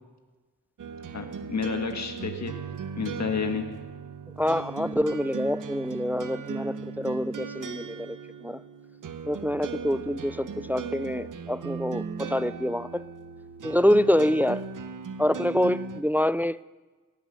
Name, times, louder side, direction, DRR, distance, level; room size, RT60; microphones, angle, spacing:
sound 1, 0.8-16.0, right 5 dB, 75° right, 1.0 m, -37 dB
voice 1, 1.1-2.5 3.0-3.6, left 5 dB, 60° left, 6 dB, 1.6 m, -30 dB
voice 2, 4.4-8.2 8.4-8.6 9.3-13.0 13.6-14.7 15.2-16.6, equal, 5° right, 18 dB, 0.4 m, -26 dB
18.0 x 10.0 x 6.7 m, 1.3 s
cardioid pair, 45°, 32 cm